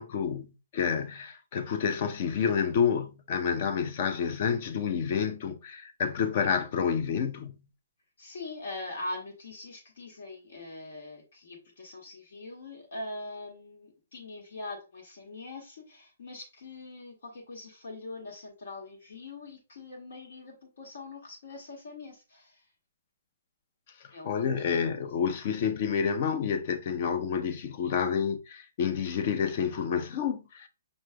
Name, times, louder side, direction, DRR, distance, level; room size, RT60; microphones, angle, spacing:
voice 1, 0.0-7.6 24.2-30.7, left 7 dB, 40° left, 0.5 m, -29 dB
voice 2, 8.2-22.6 24.1-24.3 24.7-24.8, left 2 dB, 70° left, 1.5 m, -42 dB
5.2 x 3.1 x 2.2 m
hypercardioid pair, 160°, 0 cm